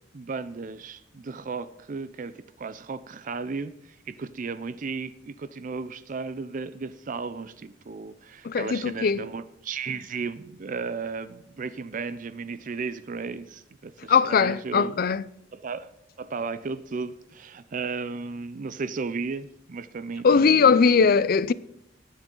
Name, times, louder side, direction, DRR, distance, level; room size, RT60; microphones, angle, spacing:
voice 1, 0.1-15.0 15.5-15.9 16.2-21.2, right 4 dB, 45° right, 0.5 m, -35 dB
voice 2, 8.4-9.2 14.1-15.2 20.2-21.5, left 5 dB, 50° left, 0.4 m, -20 dB
18.5 x 7.4 x 3.8 m
head